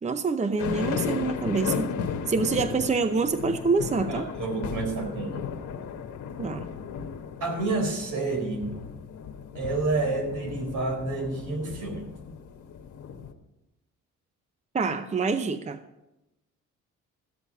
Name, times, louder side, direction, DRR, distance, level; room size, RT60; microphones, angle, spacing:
voice 1, 0.0-4.3 6.4-6.7 14.7-15.8, right 4 dB, 25° right, 10 dB, 0.7 m, -26 dB
sound 1, 0.6-13.3, left 7 dB, 75° left, 1.3 m, -35 dB
voice 2, 4.1-5.5 7.4-8.8 9.5-12.1, right 3 dB, 70° right, 2 dB, 4.2 m, -29 dB
14.5 x 8.1 x 5.4 m, 0.94 s
cardioid pair, 90°, 30 cm